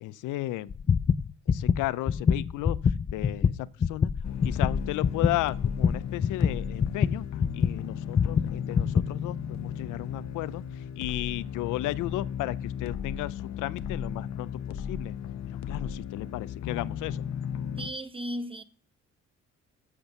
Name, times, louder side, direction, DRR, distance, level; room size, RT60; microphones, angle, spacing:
voice 1, 0.0-0.7 1.5-2.8 3.1-3.5 3.9-4.1 4.4-7.3 7.5-10.6 11.0-15.2 15.7-17.3, left 16 dB, 90° left, 0.5 m, -34 dB
sound 1, 0.7-7.8 8.2-9.1, left 6 dB, 25° left, 0.3 m, -25 dB
sound 2, 4.2-17.9, left 8 dB, 65° left, 0.8 m, -35 dB
voice 2, 17.8-18.6, equal, 15° right, 0.9 m, -35 dB
8.0 x 6.1 x 6.8 m
cardioid pair, 90°, 30 cm